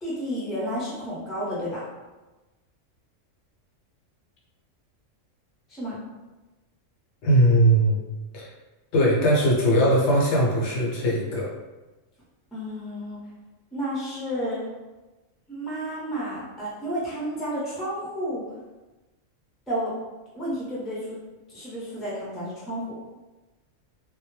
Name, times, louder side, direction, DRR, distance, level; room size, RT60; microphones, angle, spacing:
voice 1, 0.0-1.8 5.7-6.0 12.5-13.2 13.7-14.6 15.5-18.4 19.7-19.9 20.3-21.2 21.5-22.9, equal, ahead, -8 dB, 0.5 m, -31 dB
voice 2, 7.2-8.0 8.3-8.5 8.9-11.5, right 1 dB, 70° left, -4 dB, 0.9 m, -20 dB
2.1 x 2.1 x 3.1 m, 1.1 s
omnidirectional pair, 1.3 m